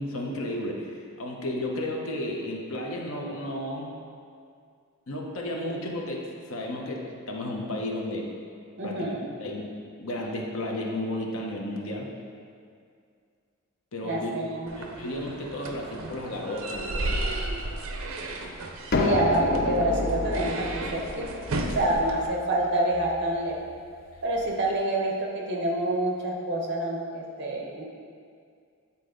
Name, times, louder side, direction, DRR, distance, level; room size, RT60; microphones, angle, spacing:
voice 1, 0.0-3.9 5.1-8.3 8.8-9.1 9.4-9.7 10.0-12.1 13.9-14.3 14.8-17.3, left 1 dB, 70° left, 0 dB, 0.9 m, -33 dB
voice 2, 8.8-9.3 14.0-15.0 19.0-21.3 21.7-23.6 24.2-27.8, right 1 dB, 55° right, -2 dB, 1.0 m, -27 dB
sound 1, 14.7-22.3, right 2 dB, 75° right, 0.6 m, -34 dB
sound 2, 18.9-24.5, left 2 dB, 45° left, 0.5 m, -31 dB
8.5 x 4.1 x 3.8 m, 2.2 s
head